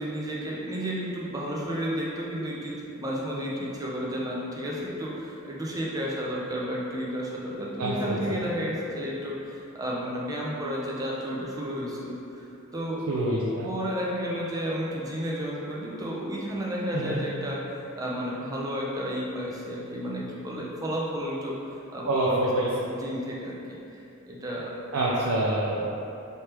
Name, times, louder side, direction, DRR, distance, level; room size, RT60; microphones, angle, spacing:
voice 1, 0.0-12.4 12.7-13.0 13.6-23.8 24.3-24.7, equal, 15° right, -4 dB, 0.5 m, -32 dB
voice 2, 7.8-8.4 13.1-13.7 16.9-17.2 22.1-22.7 24.9-25.9, right 1 dB, 70° right, -5 dB, 0.4 m, -26 dB
3.3 x 3.2 x 2.9 m, 2.7 s
head